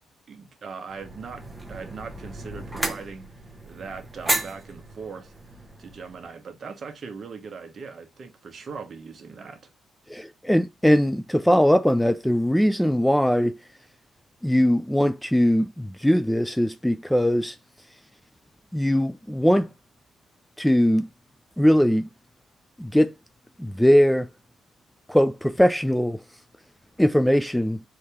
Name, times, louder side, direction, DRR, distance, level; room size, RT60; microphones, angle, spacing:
voice 1, 0.3-3.3 3.6-5.3 5.8-9.6, right 5 dB, 45° right, 1.2 m, -40 dB
sound 1, 0.9-6.3, right 1 dB, 15° right, 1.1 m, -33 dB
voice 2, 10.1-13.5 14.4-17.6 18.7-19.7 20.6-21.1 21.6-22.1 22.8-23.1 23.6-24.3 25.1-26.2 27.0-27.8, equal, 5° left, 0.3 m, -20 dB
4.6 x 2.9 x 3.5 m
cardioid pair, 90°, 0 cm